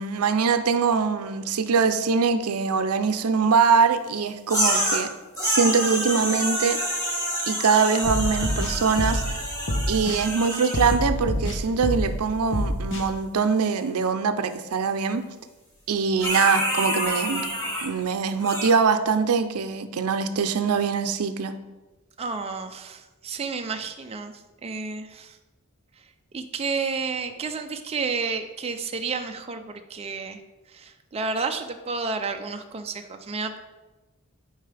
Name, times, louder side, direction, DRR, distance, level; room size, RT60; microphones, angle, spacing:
voice 1, 0.0-5.1 5.4-6.8 7.5-9.2 9.9-15.2 15.9-17.5 17.8-21.5, right 5 dB, 80° right, 10 dB, 0.5 m, -23 dB
sound 1, 4.5-5.0 5.4-10.9 16.2-17.9 18.4-18.7, equal, 15° left, 2.1 m, -27 dB
sound 2, 8.0-9.3 9.7-10.2 10.7-12.2 12.5-13.0, equal, 60° left, 1.0 m, -26 dB
voice 2, 22.2-25.4 26.3-30.4 30.7-33.6, right 4 dB, 30° right, 5 dB, 0.4 m, -31 dB
9.0 x 4.8 x 3.3 m, 1.1 s
head